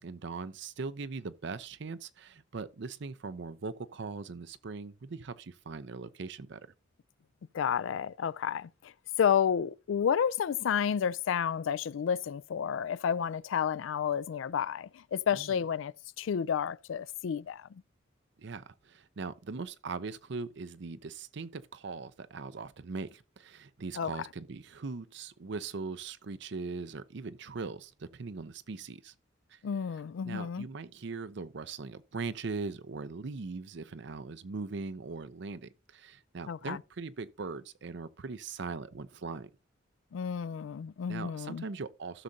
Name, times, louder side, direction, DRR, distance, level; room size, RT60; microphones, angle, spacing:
voice 1, 0.0-6.6 15.3-15.6 18.4-29.1 29.5-29.6 30.2-39.5 41.1-42.2, right 4 dB, 60° right, 0.6 m, -40 dB
voice 2, 7.5-8.9 9.2-17.8 24.0-24.1 29.6-30.7 36.5-36.8 40.1-41.6, left 7 dB, 75° left, 0.3 m, -31 dB
15.5 x 6.4 x 2.7 m
head